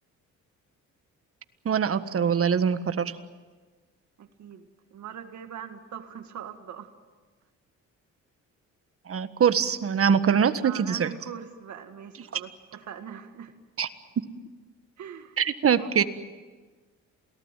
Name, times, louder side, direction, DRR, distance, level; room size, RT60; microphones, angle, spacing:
voice 1, 1.6-3.2 9.1-11.1 12.3-12.4 13.8-13.9 14.2-14.3 15.4-16.0, right 7 dB, 50° right, 11 dB, 1.6 m, -23 dB
voice 2, 4.2-6.9 10.6-13.5 15.0-15.4 15.8-16.0, right 8 dB, 70° right, 7 dB, 2.0 m, -42 dB
28.0 x 18.5 x 9.1 m, 1.3 s
cardioid pair, 90°, 30 cm